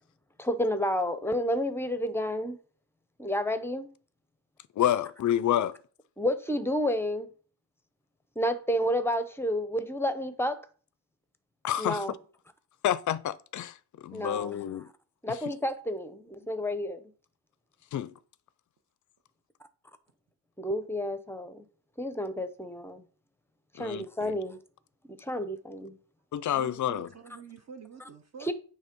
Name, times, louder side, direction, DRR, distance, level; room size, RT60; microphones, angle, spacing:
voice 1, 0.4-2.6 3.2-3.9 6.2-7.3 8.4-10.6 11.8-12.2 14.1-14.8 15.2-17.1 20.6-21.6 22.0-23.0 23.7-24.6 25.1-26.0 28.4-28.5, equal, 5° left, 0.7 m, -30 dB
voice 2, 4.8-5.7 11.6-12.0 12.8-13.7 14.0-14.9 17.9-18.1 23.8-24.3 26.3-27.1, left 11 dB, 45° left, 0.5 m, -28 dB
voice 3, 26.5-28.5, right 6 dB, 40° right, 0.8 m, -46 dB
9.1 x 3.3 x 5.2 m
cardioid pair, 140°, 43 cm